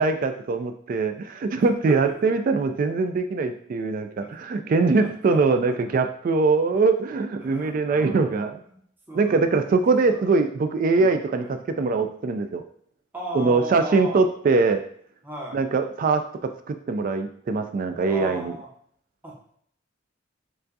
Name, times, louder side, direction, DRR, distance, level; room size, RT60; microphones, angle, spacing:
voice 1, 0.0-8.5 9.1-11.4 11.8-12.6 13.3-14.8 15.5-18.5, right 4 dB, 45° right, 7 dB, 0.3 m, -22 dB
voice 2, 1.6-2.3 4.2-5.9 7.4-8.8 9.1-10.3 10.9-12.1 13.1-14.2 15.2-15.6 18.1-18.7 19.2-19.5, right 1 dB, 10° right, -3 dB, 0.9 m, -38 dB
6.7 x 2.5 x 2.6 m, 0.63 s
head